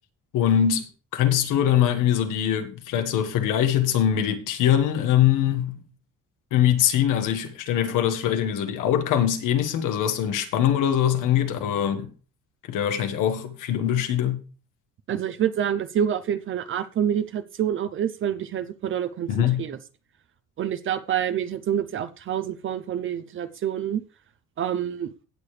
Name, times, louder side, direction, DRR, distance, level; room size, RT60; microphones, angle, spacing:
voice 1, 0.3-5.8 6.5-12.1 12.7-14.4 19.3-19.7, left 10 dB, 90° left, 1.6 m, -22 dB
voice 2, 15.1-19.3 19.6-19.8 20.6-24.0 24.6-25.1, right 9 dB, 40° right, 0.6 m, -27 dB
16.5 x 6.8 x 3.3 m
cardioid pair, 165°, 30 cm